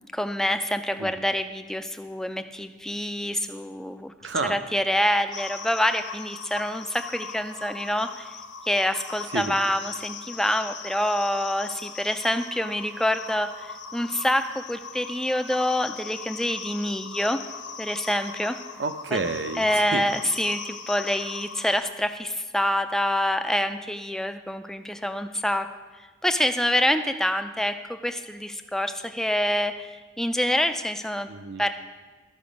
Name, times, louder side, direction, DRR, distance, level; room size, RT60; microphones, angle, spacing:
voice 1, 0.1-4.1 4.5-8.3 8.7-17.4 17.8-18.6 19.1-19.2 19.6-25.7 26.2-31.3 31.6-31.7, left 1 dB, 5° left, 8 dB, 0.3 m, -26 dB
voice 2, 4.2-4.6 9.3-9.6 18.8-20.1 31.3-31.6, right 3 dB, 70° right, 8 dB, 0.6 m, -30 dB
sound 1, 5.3-21.8, left 6 dB, 70° left, 1.0 m, -40 dB
13.0 x 5.9 x 5.1 m, 1.4 s
head